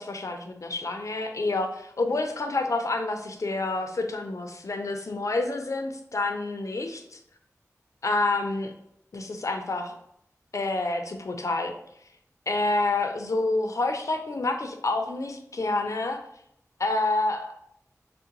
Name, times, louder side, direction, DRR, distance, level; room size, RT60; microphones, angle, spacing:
voice 1, 0.0-7.2 8.0-8.7 9.1-10.0 10.5-11.7 12.5-16.2 16.8-17.5, left 2 dB, 60° left, 5 dB, 0.4 m, -28 dB
3.6 x 2.1 x 2.9 m, 0.73 s
wide cardioid pair, 60°, 6 cm